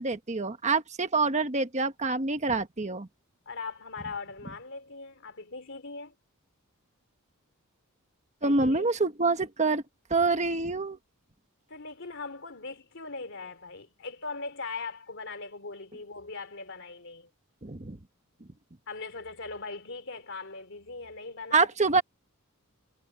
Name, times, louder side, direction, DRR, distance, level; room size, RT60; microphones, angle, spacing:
voice 1, 0.0-3.1 8.4-9.8 10.1-11.0 17.6-18.0 21.5-22.0, right 3 dB, 35° right, 1.3 m, -26 dB
voice 2, 3.5-6.1 8.4-8.9 11.7-17.3 18.9-21.7, left 3 dB, 60° left, 3.1 m, -40 dB
head